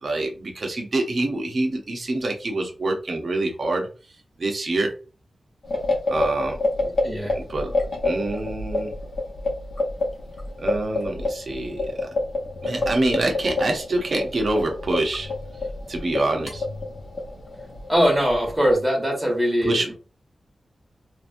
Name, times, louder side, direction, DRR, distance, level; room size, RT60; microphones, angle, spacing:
voice 1, 0.0-3.9 4.4-5.0 6.1-6.6 7.3-7.7 8.0-8.9 10.6-12.1 12.6-15.3 15.9-16.6 19.6-19.9, right 2 dB, 55° right, 2 dB, 0.8 m, -25 dB
sound 1, 5.6-18.7, left 2 dB, 60° left, 1.1 m, -29 dB
voice 2, 7.0-7.4 17.9-19.9, equal, 5° right, -3 dB, 1.6 m, -21 dB
3.0 x 2.5 x 2.6 m, 0.33 s
wide cardioid pair, 105°, 0 cm